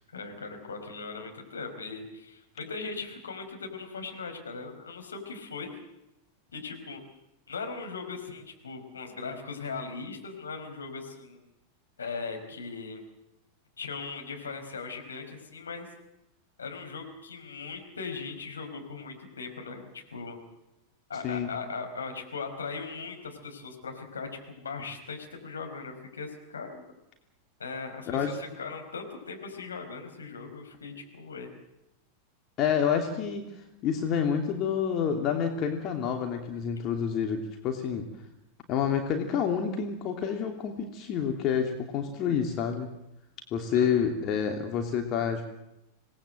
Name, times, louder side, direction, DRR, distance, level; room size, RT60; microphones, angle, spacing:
voice 1, 0.1-5.7 6.5-7.0 7.5-11.4 12.0-13.0 13.8-15.9 16.6-20.4 21.1-26.8 27.6-31.5 43.7-43.9, left 4 dB, 70° left, 4 dB, 5.1 m, -39 dB
voice 2, 32.6-33.4 33.8-38.0 38.7-42.9 43.5-45.4, left 7 dB, 35° left, 3 dB, 3.0 m, -28 dB
26.5 x 19.5 x 7.8 m, 0.88 s
figure-of-eight pair, 90°, 0 cm